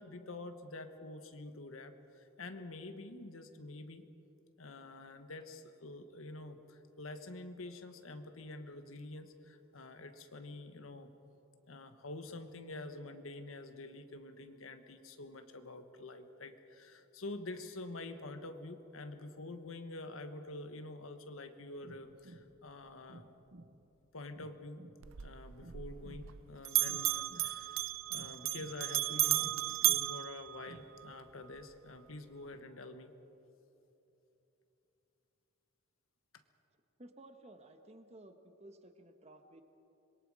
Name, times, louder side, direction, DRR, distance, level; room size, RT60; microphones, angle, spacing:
voice 1, 0.0-4.0 4.6-11.1 11.7-23.3 24.1-24.8 25.2-27.8 28.1-33.1, left 2 dB, 90° left, 8 dB, 1.4 m, -47 dB
sound 1, 21.8-30.9, right 1 dB, 50° right, 0.8 m, -57 dB
Bell, 25.0-26.4 26.7-31.1, right 15 dB, 75° right, 0.5 m, -34 dB
voice 2, 37.0-39.6, right 1 dB, 30° right, 7 dB, 1.3 m, -55 dB
25.5 x 22.0 x 4.9 m, 3.0 s
head